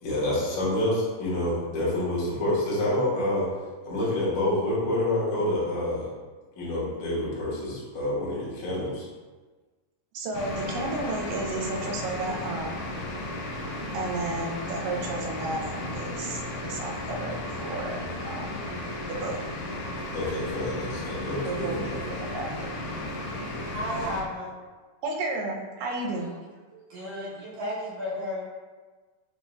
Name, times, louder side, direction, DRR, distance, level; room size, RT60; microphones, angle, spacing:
voice 1, 0.0-3.5 3.8-6.1 6.6-9.1 20.1-22.0, left 1 dB, 70° left, -8 dB, 2.7 m, -27 dB
voice 2, 10.1-12.9 13.9-18.5 19.1-19.4 21.5-21.8 22.1-22.7 25.0-26.4, right 2 dB, 85° right, 0 dB, 2.3 m, -32 dB
sound 1, 10.3-24.2, left 1 dB, 85° left, 2.3 m, -34 dB
voice 3, 23.7-24.5 26.7-28.4, left 1 dB, 60° right, -8 dB, 1.9 m, -33 dB
7.3 x 2.7 x 2.3 m, 1.3 s
omnidirectional pair, 3.8 m